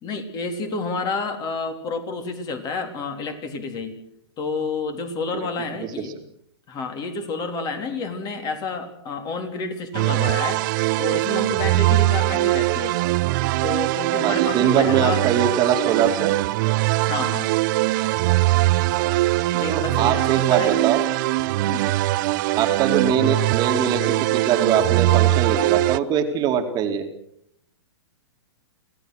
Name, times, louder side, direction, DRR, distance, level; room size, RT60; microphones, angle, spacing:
voice 1, 0.0-4.0 4.4-6.1 6.7-10.7 11.0-13.0 13.6-15.3 17.1-17.5 19.5-20.8 21.7-21.9, left 3 dB, 30° left, 7 dB, 3.5 m, -29 dB
sound 1, 9.9-26.0, right 18 dB, 45° right, 0.8 m, -21 dB
voice 2, 14.2-16.3 19.7-21.0 22.6-27.0, right 8 dB, 30° right, 5 dB, 2.4 m, -22 dB
26.0 x 16.5 x 6.5 m, 0.74 s
hypercardioid pair, 130°, 14 cm